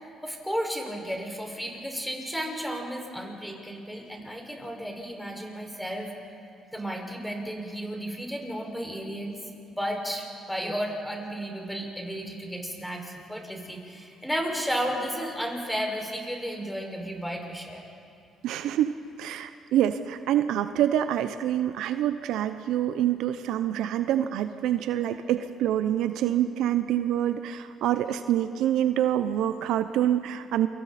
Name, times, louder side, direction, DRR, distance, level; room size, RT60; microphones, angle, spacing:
voice 1, 0.2-6.1 6.7-9.4 9.8-17.8, equal, 5° left, 1 dB, 5.5 m, -33 dB
voice 2, 18.4-30.7, right 11 dB, 75° right, 11 dB, 0.7 m, -26 dB
28.5 x 25.0 x 4.3 m, 2.6 s
supercardioid pair, 65°, 0 cm